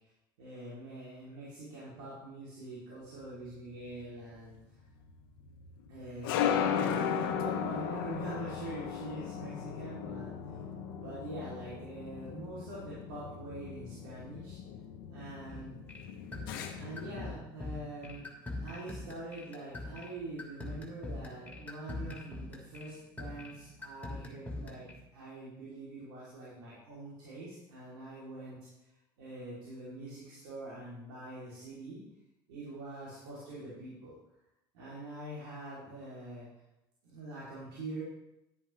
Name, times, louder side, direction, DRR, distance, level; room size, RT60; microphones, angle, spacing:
voice 1, 0.4-4.6 5.9-10.6 11.0-14.6 15.1-15.7 16.7-18.3 18.6-24.8 25.1-28.6 29.2-32.0 32.5-34.1 34.7-36.5 37.0-38.0, right 2 dB, 85° right, -8 dB, 3.3 m, -44 dB
sound 1, 3.3-17.3, left 8 dB, 80° left, 1.0 m, -37 dB
sound 2, 15.5-24.9, left 2 dB, 15° left, 3.0 m, -44 dB
10.5 x 10.0 x 3.3 m, 0.92 s
hypercardioid pair, 75°, 11 cm